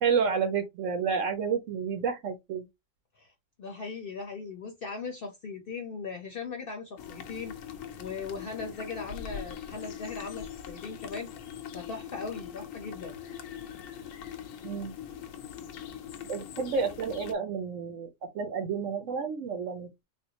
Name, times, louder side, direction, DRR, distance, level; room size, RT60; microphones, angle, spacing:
voice 1, 0.0-2.7 14.6-15.0 16.3-18.1 18.3-19.9, right 6 dB, 75° right, 1.1 m, -30 dB
voice 2, 3.6-11.3 11.7-13.1, left 4 dB, 55° left, 0.8 m, -39 dB
sound 1, 7.0-17.3, left 8 dB, 85° left, 1.0 m, -42 dB
3.6 x 2.6 x 2.7 m
omnidirectional pair, 1.3 m